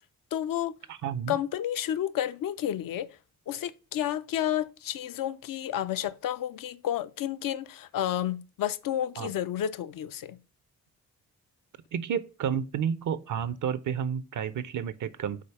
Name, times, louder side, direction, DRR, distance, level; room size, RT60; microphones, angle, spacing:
voice 1, 0.3-0.7 1.3-3.1 3.5-10.4, left 11 dB, 65° left, 0.6 m, -31 dB
voice 2, 0.9-1.3 9.2-9.3 11.9-15.4, right 8 dB, 55° right, 0.6 m, -31 dB
5.0 x 4.0 x 5.5 m
supercardioid pair, 45°, 36 cm